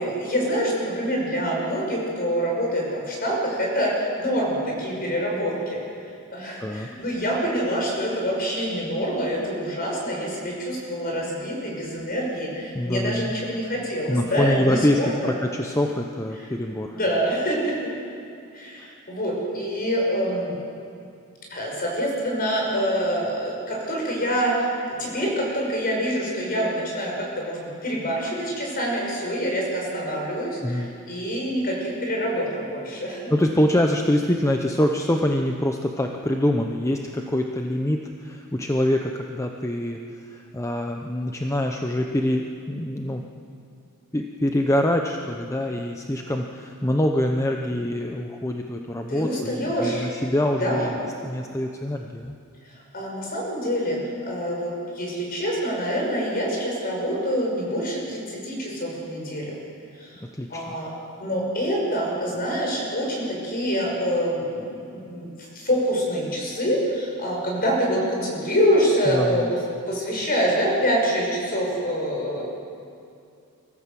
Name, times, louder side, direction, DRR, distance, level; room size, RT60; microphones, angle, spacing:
voice 1, 0.0-5.8 6.3-15.3 16.4-16.5 16.9-17.9 18.5-20.6 21.5-33.3 49.1-50.1 50.6-50.9 52.9-59.6 60.0-60.2 60.5-60.9 61.2-69.6 69.9-72.5, equal, 40° left, -1 dB, 5.8 m, -26 dB
voice 2, 12.7-13.3 14.1-17.0 30.6-30.9 33.3-40.0 40.3-43.2 44.1-50.9 51.2-52.3 60.3-60.7 69.1-69.5, left 1 dB, 15° left, 3 dB, 0.8 m, -25 dB
24.5 x 15.0 x 7.6 m, 2.5 s
head